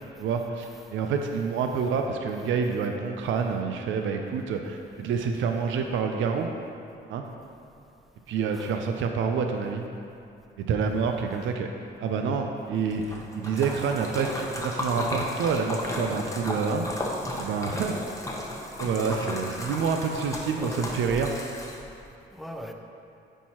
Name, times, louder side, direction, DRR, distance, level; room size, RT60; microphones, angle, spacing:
voice 1, 0.2-6.5 7.1-7.3 8.3-9.8 10.6-11.7 12.0-16.9 17.4-18.0 18.8-21.4, right 5 dB, 75° right, 4 dB, 0.5 m, -28 dB
Splash splatter, 12.9-22.0, left 1 dB, 15° left, 0.9 m, -34 dB
voice 2, 20.6-21.3 22.3-22.7, equal, ahead, 3 dB, 0.5 m, -40 dB
9.8 x 4.6 x 2.9 m, 2.6 s
cardioid pair, 90°, 20 cm